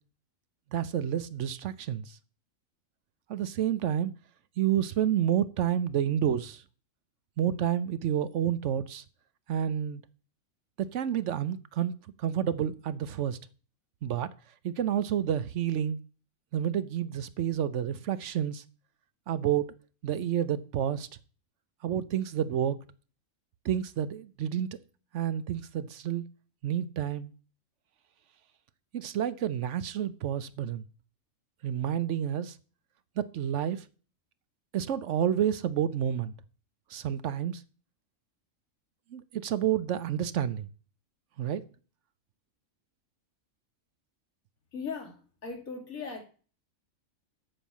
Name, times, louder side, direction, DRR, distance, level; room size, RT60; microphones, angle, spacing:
voice 1, 0.7-2.2 3.3-4.1 4.6-6.6 7.4-9.0 9.5-10.0 10.8-11.9 12.2-13.4 14.0-14.3 14.6-16.0 16.5-18.6 19.3-19.8 20.0-21.1 21.8-22.8 23.6-24.7 25.1-26.2 26.6-27.3 28.9-30.8 31.6-32.6 33.2-33.8 34.7-36.3 36.9-37.6 39.1-40.7 41.4-41.6, right 10 dB, 65° right, 0.9 m, -29 dB
voice 2, 44.7-46.2, left 5 dB, 85° left, 2.7 m, -38 dB
8.4 x 7.3 x 7.2 m
omnidirectional pair, 1.4 m